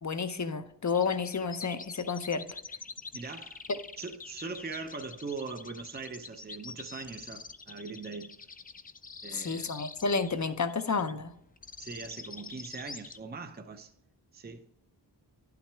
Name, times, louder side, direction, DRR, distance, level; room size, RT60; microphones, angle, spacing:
voice 1, 0.0-2.4 3.7-3.8 9.3-11.3, left 5 dB, 40° left, 0.7 m, -31 dB
sound 1, 0.9-13.2, left 4 dB, 20° left, 0.3 m, -46 dB
voice 2, 3.1-3.6 4.0-8.4 9.2-9.7 11.8-13.9 14.3-14.6, right 4 dB, 20° right, 0.6 m, -41 dB
11.0 x 5.9 x 3.4 m
wide cardioid pair, 75°, 44 cm